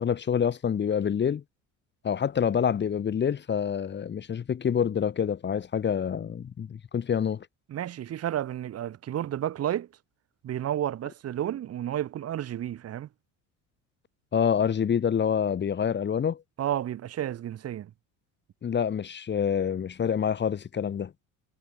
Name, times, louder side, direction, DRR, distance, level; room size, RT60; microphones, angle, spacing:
voice 1, 0.0-1.4 2.0-7.5 14.3-16.4 18.6-21.1, left 7 dB, 30° left, 2.2 m, -27 dB
voice 2, 7.7-9.9 10.4-13.1 16.6-17.9, right 11 dB, 45° right, 2.7 m, -31 dB
cardioid pair, 120°, 34 cm